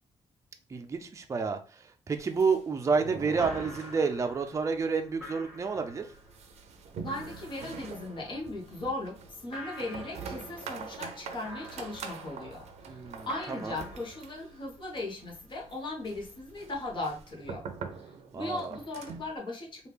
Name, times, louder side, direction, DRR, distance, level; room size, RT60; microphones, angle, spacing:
voice 1, 0.7-6.1 12.9-13.3 13.6-13.7 18.3-18.7, right 5 dB, 30° right, 5 dB, 0.4 m, -30 dB
sound 1, 2.1-4.5 4.8-4.9 5.2-5.3 5.7-19.4, right 5 dB, 85° right, 0.5 m, -44 dB
sound 2, 3.4-17.9, equal, 5° right, 1.6 m, -50 dB
voice 2, 7.0-13.0 13.3-17.6 18.0-19.9, left 2 dB, 45° left, -1 dB, 1.0 m, -38 dB
3.2 x 2.4 x 3.3 m, 0.36 s
cardioid pair, 105°, 11 cm